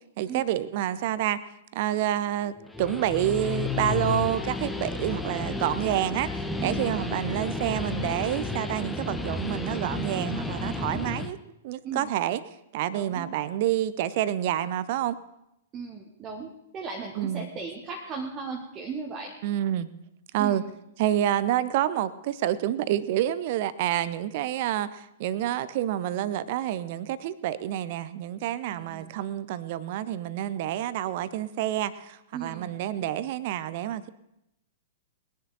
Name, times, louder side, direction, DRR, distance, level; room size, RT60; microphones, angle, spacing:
voice 1, 0.2-1.4 1.7-6.3 6.6-11.4 11.6-12.4 12.7-15.2 17.2-17.5 19.4-19.9 20.3-20.6 21.0-34.1, right 12 dB, 45° right, 16 dB, 0.7 m, -28 dB
Guitar, 2.6-11.3, left 3 dB, 5° left, 0.9 m, -32 dB
voice 2, 6.6-6.9 10.7-11.1 11.8-12.1 12.9-13.3 15.7-19.4 20.4-20.6 28.7-29.1 32.3-32.8, right 5 dB, 25° right, 0 dB, 1.4 m, -37 dB
21.0 x 10.5 x 4.1 m, 0.84 s
figure-of-eight pair, 105°, 0 cm